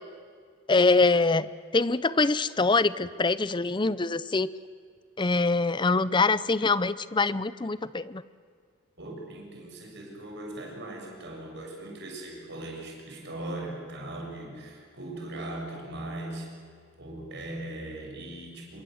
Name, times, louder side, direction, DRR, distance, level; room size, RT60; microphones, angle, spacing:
voice 1, 0.7-4.5 5.2-8.2, left 3 dB, 20° left, 17 dB, 0.6 m, -24 dB
voice 2, 9.0-16.5 17.0-18.8, right 1 dB, 55° right, 0 dB, 6.7 m, -39 dB
26.5 x 23.5 x 7.9 m, 2.1 s
head